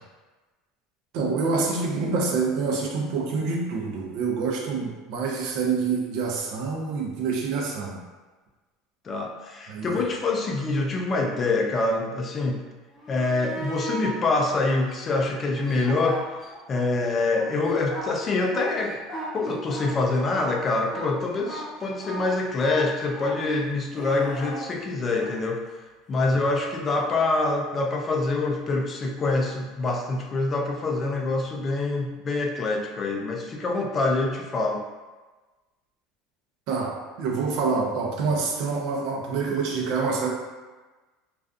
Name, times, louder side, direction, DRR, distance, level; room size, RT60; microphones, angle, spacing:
voice 1, 1.1-8.0 9.7-10.0 36.7-40.3, right 4 dB, 60° right, 0 dB, 0.5 m, -27 dB
voice 2, 9.0-12.6 13.1-16.2 16.7-19.0 19.3-25.6 26.1-34.8, left 3 dB, 25° left, 2 dB, 0.3 m, -25 dB
sound 1, 12.9-14.2 14.8-16.8 17.2-25.4 28.1-28.2, right 1 dB, 10° left, 0.8 m, -37 dB
2.4 x 2.3 x 2.4 m, 1.2 s
supercardioid pair, 140°, 0 cm